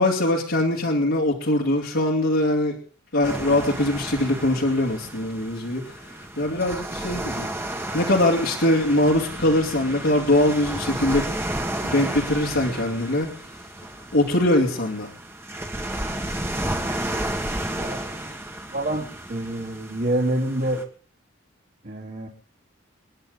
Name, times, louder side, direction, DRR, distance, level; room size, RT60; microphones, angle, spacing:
voice 1, 0.0-2.7 3.1-7.5 7.9-11.3 11.8-13.3 14.1-15.1, left 1 dB, 70° left, -3 dB, 2.8 m, -22 dB
sound 1, 3.2-20.8, right 1 dB, 10° right, 1.7 m, -32 dB
voice 2, 17.8-18.4 18.7-20.8 21.8-22.3, right 1 dB, 50° right, -5 dB, 3.2 m, -28 dB
29.0 x 10.5 x 4.0 m, 0.41 s
head